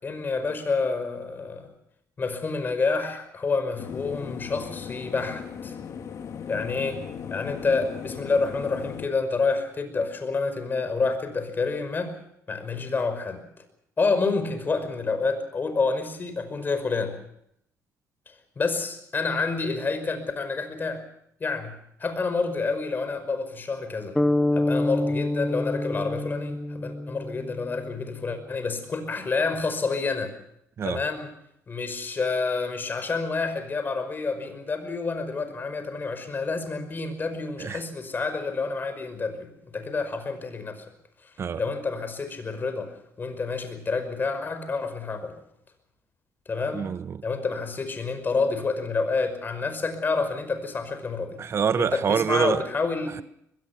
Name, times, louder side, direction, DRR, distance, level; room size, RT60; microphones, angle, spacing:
voice 1, 0.0-1.7 2.2-5.8 6.5-7.0 7.3-12.1 12.5-13.5 14.0-17.2 18.6-21.0 21.4-24.2 24.5-30.3 30.8-31.3 31.7-40.8 41.6-42.9 43.2-45.3 46.5-46.9 47.2-51.4 51.8-53.2, left 4 dB, 35° left, 5.4 m, -28 dB
sound 1, 3.8-9.1, left 7 dB, 60° left, 2.6 m, -37 dB
sound 2, 24.2-28.1, left 1 dB, 10° left, 1.0 m, -27 dB
voice 2, 46.7-47.2 51.4-52.6, right 7 dB, 45° right, 0.8 m, -25 dB
23.5 x 21.0 x 6.1 m
cardioid pair, 100°, 6 cm